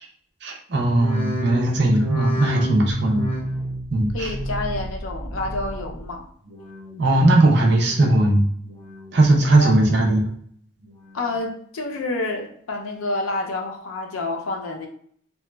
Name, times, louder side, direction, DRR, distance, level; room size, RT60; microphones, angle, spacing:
voice 1, 0.4-3.3 3.9-4.3 7.0-8.5 9.1-10.3, right 2 dB, 55° right, 1 dB, 0.5 m, -18 dB
sound 1, 0.7-6.1 6.4-7.0 7.5-8.2 8.6-9.2 9.7-10.3 10.8-11.4 11.9-12.0, equal, 30° left, 1.3 m, -31 dB
voice 2, 4.1-6.2 9.6-9.8 11.1-14.9, left 2 dB, 85° left, 3 dB, 0.5 m, -28 dB
2.8 x 2.2 x 2.2 m, 0.62 s
head